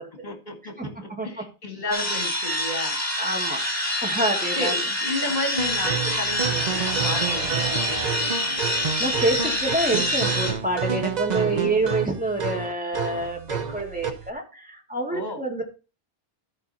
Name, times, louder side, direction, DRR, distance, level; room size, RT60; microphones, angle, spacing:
voice 1, 0.2-3.0 4.5-8.6 11.4-11.7 15.1-15.4, left 2 dB, 45° left, 4 dB, 2.0 m, -33 dB
voice 2, 0.8-1.4 3.2-3.6 4.0-4.8 9.0-15.6, right 2 dB, 10° right, 1 dB, 1.9 m, -27 dB
sound 1, 1.9-10.5, equal, 15° left, 2.1 m, -26 dB
sound 2, 5.6-14.3, right 7 dB, 45° right, 0.9 m, -29 dB
13.5 x 5.2 x 4.2 m, 0.32 s
omnidirectional pair, 1.0 m